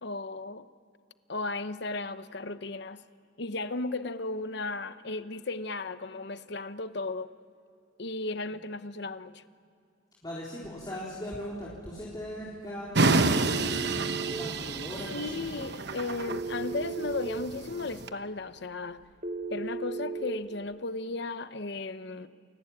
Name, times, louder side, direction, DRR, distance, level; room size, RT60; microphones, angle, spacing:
voice 1, 0.0-0.7 1.3-3.0 3.4-7.3 8.0-9.4 15.1-19.0 19.5-22.3, left 3 dB, 60° left, 0.9 m, -35 dB
voice 2, 10.2-15.7, equal, 20° left, 3.9 m, -39 dB
sound 1, 13.0-18.1, right 3 dB, 60° right, 1.0 m, -28 dB
Telephone, 13.3-14.4 16.3-17.3 19.2-20.3, right 3 dB, 35° right, 2.3 m, -35 dB
29.5 x 23.0 x 8.8 m
head